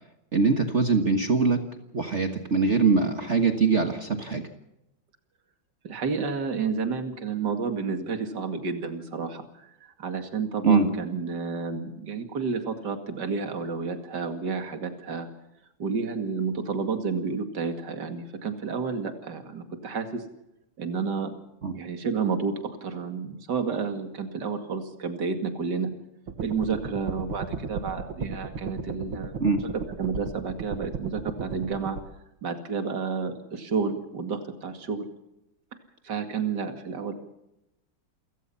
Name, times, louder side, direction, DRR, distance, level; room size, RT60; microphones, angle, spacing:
voice 1, 0.3-1.6 1.9-4.4 10.6-10.8 21.6-21.7 29.4-29.6, right 4 dB, 40° right, 6 dB, 1.7 m, -22 dB
voice 2, 5.8-9.4 9.8-15.3 15.8-20.2 20.8-21.3 21.7-25.9 26.4-29.3 30.0-32.0 32.4-35.1 36.0-37.1, right 5 dB, 55° right, 7 dB, 2.9 m, -30 dB
sound 1, 26.3-32.0, right 5 dB, 85° right, 2.5 m, -35 dB
29.5 x 16.5 x 5.7 m, 0.86 s
omnidirectional pair, 2.2 m